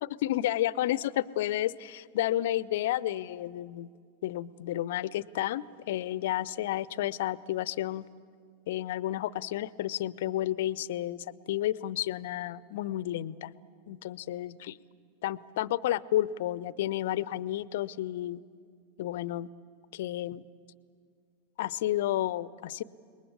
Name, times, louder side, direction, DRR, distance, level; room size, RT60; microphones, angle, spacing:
voice 1, 0.0-3.9 4.2-8.1 8.7-13.5 13.9-14.8 15.2-18.4 19.0-19.5 19.9-20.4 21.6-22.8, left 13 dB, 55° left, 20 dB, 0.6 m, -31 dB
30.0 x 20.0 x 8.7 m, 2.1 s
figure-of-eight pair, 90°, 0 cm